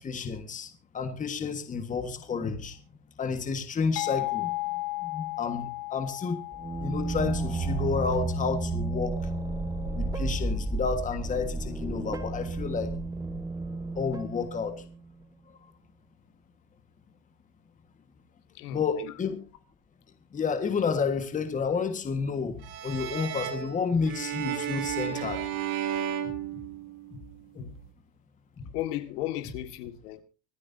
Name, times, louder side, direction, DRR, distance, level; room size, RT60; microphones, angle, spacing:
voice 1, 0.0-2.8 3.2-6.4 6.8-9.2 9.9-13.0 13.9-14.8 18.7-19.4 20.3-25.4 26.2-26.4 27.1-27.2 27.6-27.7 28.6-28.7, left 5 dB, 15° left, 1.5 m, -31 dB
sound 1, 4.0-9.4, left 24 dB, 45° left, 0.5 m, -36 dB
sound 2, 6.5-15.1, right 2 dB, 10° right, 1.1 m, -32 dB
voice 2, 18.5-19.1 27.5-27.8 28.7-30.2, left 14 dB, 70° left, 2.0 m, -35 dB
sound 3, 22.6-27.2, right 10 dB, 65° right, 3.2 m, -33 dB
25.5 x 9.8 x 2.7 m
supercardioid pair, 145°, 48 cm